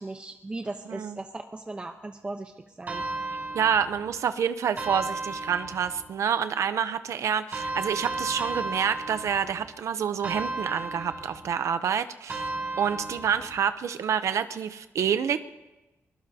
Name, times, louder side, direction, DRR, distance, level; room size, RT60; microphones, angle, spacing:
voice 1, 0.0-2.5 2.8-3.0, right 2 dB, 20° right, 4 dB, 0.8 m, -37 dB
sound 1, 2.9-4.2 4.8-6.1 7.5-9.7 10.2-11.5 12.3-13.6, right 2 dB, 35° right, 4.5 m, -34 dB
voice 2, 3.5-12.5 12.8-15.4, right 8 dB, 80° right, 11 dB, 0.6 m, -27 dB
24.0 x 21.5 x 2.8 m, 1.1 s
wide cardioid pair, 145°, 5 cm